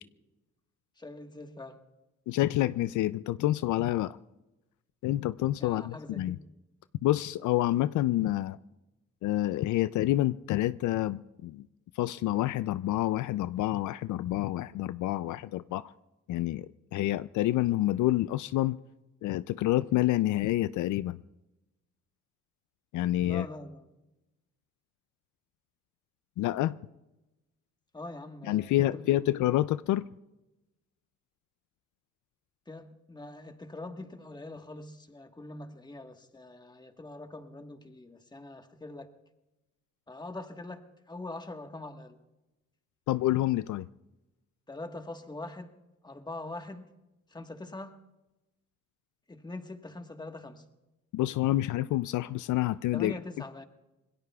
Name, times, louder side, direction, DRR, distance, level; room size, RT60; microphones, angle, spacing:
voice 1, 1.0-1.8 5.6-6.4 23.2-24.0 27.9-29.3 32.7-39.1 40.1-42.2 44.7-45.7 46.0-46.9 47.3-48.0 49.3-50.7 52.9-53.7, left 2 dB, 15° left, 1.4 m, -43 dB
voice 2, 2.3-4.2 5.0-6.4 7.0-8.6 9.2-11.7 12.0-15.9 16.3-18.8 19.2-21.2 22.9-23.4 26.4-26.8 28.5-30.0 43.1-43.9 51.1-53.1, left 15 dB, 75° left, 0.4 m, -28 dB
26.5 x 20.0 x 2.3 m
cardioid pair, 90°, 30 cm